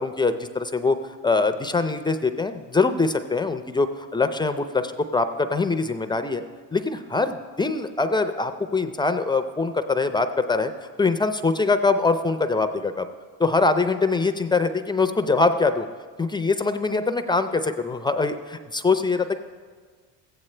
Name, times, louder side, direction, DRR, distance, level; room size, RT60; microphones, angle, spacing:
voice 1, 0.0-6.4 6.7-10.7 11.0-13.1 13.4-15.9 16.2-19.4, left 3 dB, 10° left, 9 dB, 0.3 m, -23 dB
15.0 x 8.7 x 3.2 m, 1.5 s
supercardioid pair, 105°, 38 cm